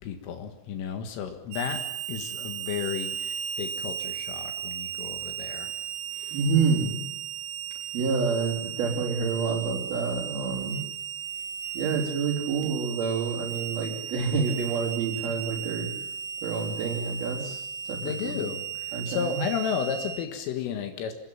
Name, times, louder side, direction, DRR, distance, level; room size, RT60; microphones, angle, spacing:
voice 1, 0.0-5.7 6.1-6.5 11.8-11.9 18.0-21.1, left 7 dB, 75° left, 6 dB, 4.2 m, -33 dB
Harmonica, 1.5-20.3, right 8 dB, 80° right, 4.7 m, -36 dB
voice 2, 6.3-7.0 7.9-10.8 11.7-15.9 16.4-18.0 18.2-18.3 18.9-19.4, right 5 dB, 50° right, -6 dB, 5.6 m, -28 dB
26.5 x 19.5 x 8.9 m, 0.84 s
omnidirectional pair, 6.0 m